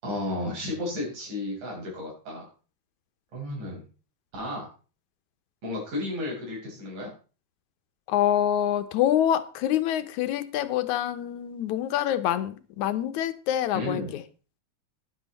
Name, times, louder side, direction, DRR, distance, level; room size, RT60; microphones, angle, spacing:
voice 1, 0.0-2.4 3.3-3.8 4.3-4.7 5.6-7.1 13.7-14.1, left 2 dB, 80° right, 7.3 m, -33 dB
voice 2, 8.1-14.2, left 11 dB, 75° left, 2.3 m, -26 dB
12.0 x 10.5 x 4.2 m
omnidirectional pair, 3.5 m